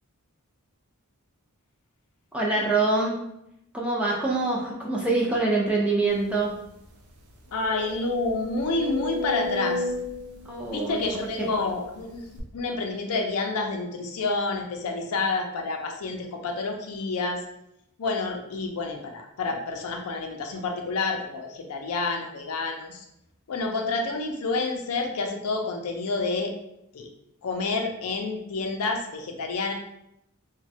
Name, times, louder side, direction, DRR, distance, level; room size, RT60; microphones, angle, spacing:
voice 1, 2.3-3.2 3.7-6.5 10.5-11.1 11.4-11.5, right 3 dB, 5° right, -3 dB, 0.4 m, -25 dB
sound 1, 6.4-6.5 6.8-6.9 7.5-11.7 12.4-12.5, left 2 dB, 70° right, 0.5 m, -34 dB
voice 2, 7.5-9.8 10.7-12.2 12.5-17.4 18.0-23.0 23.5-26.5 26.9-27.1 27.4-29.7, left 3 dB, 75° left, 3 dB, 0.5 m, -29 dB
3.0 x 2.2 x 2.7 m, 0.80 s
head